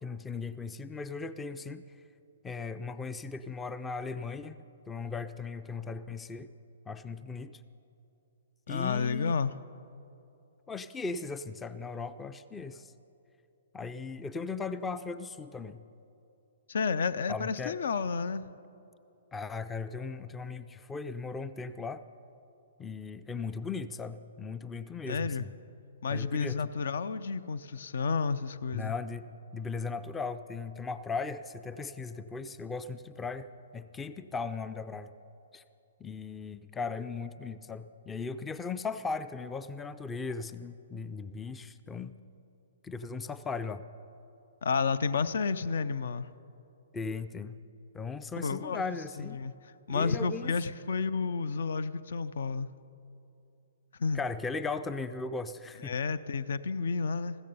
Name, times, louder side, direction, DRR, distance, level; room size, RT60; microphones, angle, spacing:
voice 1, 0.0-1.8 2.4-4.6 4.9-6.5 6.9-7.6 8.7-9.4 10.7-12.9 13.7-15.8 17.3-17.8 19.3-22.0 22.8-25.5 26.1-26.6 28.7-33.5 33.7-35.1 35.5-35.6 36.0-42.1 42.8-43.8 46.9-47.6 47.9-49.4 49.9-50.5 54.1-55.9, left 4 dB, 10° left, 0.4 m, -37 dB
voice 2, 8.7-9.5 16.7-18.4 25.1-25.5 26.0-28.9 44.6-46.3 48.3-48.8 49.2-49.5 49.9-52.7 54.0-54.2 55.8-57.4, left 5 dB, 65° left, 0.5 m, -31 dB
15.0 x 13.5 x 5.4 m
figure-of-eight pair, 125°, 0 cm